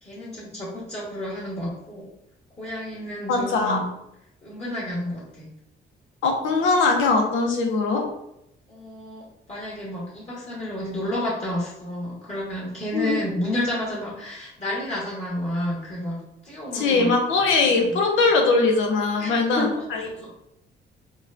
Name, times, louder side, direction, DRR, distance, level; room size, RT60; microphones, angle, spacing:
voice 1, 0.0-2.1 2.6-3.8 4.4-5.5 8.7-16.2 16.4-17.1 17.6-17.9 19.2-20.3, left 1 dB, 35° left, -5 dB, 1.4 m, -31 dB
voice 2, 3.3-3.8 6.2-8.0 12.9-13.1 16.7-19.7, left 3 dB, 80° left, 2 dB, 0.8 m, -21 dB
4.5 x 2.3 x 2.7 m, 0.80 s
cardioid pair, 90°, 20 cm